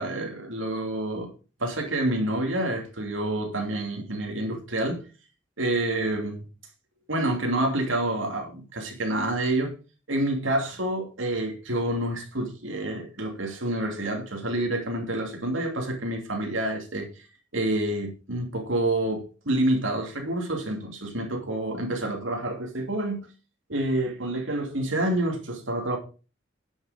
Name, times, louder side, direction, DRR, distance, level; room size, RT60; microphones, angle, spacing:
voice 1, 0.0-1.3 1.6-5.0 5.6-6.4 7.1-9.7 10.1-17.2 17.5-23.3 23.7-26.0, right 1 dB, 80° right, 2.8 m, -28 dB
10.5 x 7.2 x 5.1 m
head